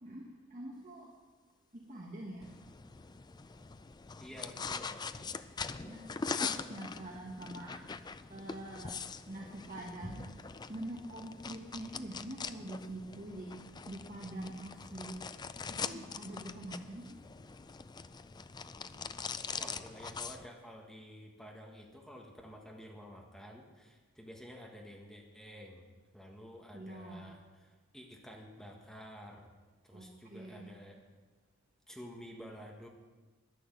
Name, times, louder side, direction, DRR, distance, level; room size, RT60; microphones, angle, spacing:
voice 1, 0.0-1.1 1.7-2.5 5.8-9.0 9.3-10.3 10.7-13.6 13.9-15.2 15.7-17.2 18.9-19.1 19.5-19.6 26.7-27.3 29.9-30.8, right 1 dB, 40° right, -2 dB, 1.4 m, -45 dB
sound 1, 2.4-20.5, left 5 dB, 20° left, 0.4 m, -43 dB
voice 2, 4.2-5.0 19.6-25.8 26.1-29.5 29.8-31.0 31.9-32.9, equal, ahead, -1 dB, 1.6 m, -50 dB
11.0 x 10.5 x 7.7 m, 1.3 s
head